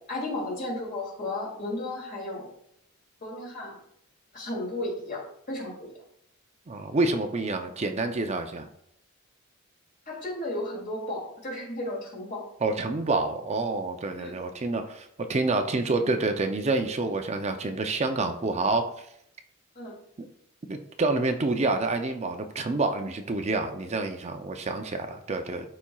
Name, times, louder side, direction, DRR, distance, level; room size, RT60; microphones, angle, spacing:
voice 1, 0.0-2.5 3.2-3.8 4.3-5.9 10.1-12.4 14.2-14.3 19.7-19.9, left 1 dB, 40° left, -3 dB, 2.7 m, -34 dB
voice 2, 6.7-8.7 12.6-18.9 20.2-20.3 20.7-25.7, right 3 dB, 30° right, 6 dB, 0.5 m, -28 dB
12.0 x 4.2 x 2.3 m, 0.73 s
head